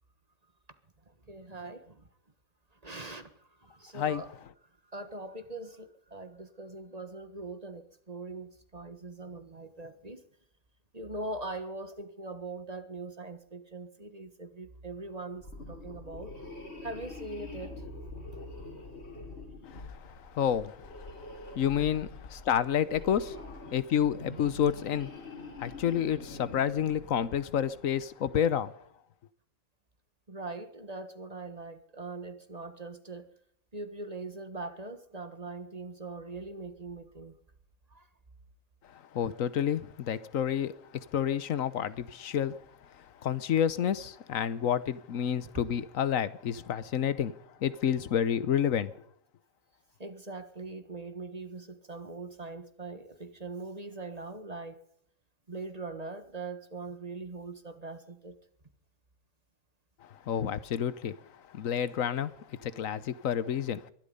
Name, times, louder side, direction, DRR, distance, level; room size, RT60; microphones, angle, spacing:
voice 1, 1.3-2.1 2.8-3.3 3.6-4.3 4.9-10.2 10.9-16.4 16.8-17.8 21.4-21.5 30.3-33.3 33.7-37.4 37.9-38.0 50.0-54.8 55.5-58.4, right 3 dB, 30° right, 1.5 m, -41 dB
sound 1, 15.3-27.8, left 2 dB, 50° left, 3.2 m, -45 dB
voice 2, 19.7-21.1 21.5-23.4 23.7-25.1 25.6-28.7 39.1-40.7 41.1-42.5 43.2-47.3 47.6-48.9 60.3-61.1 61.5-62.3 62.6-63.8, left 9 dB, 75° left, 1.3 m, -29 dB
22.0 x 12.0 x 5.4 m
omnidirectional pair, 1.4 m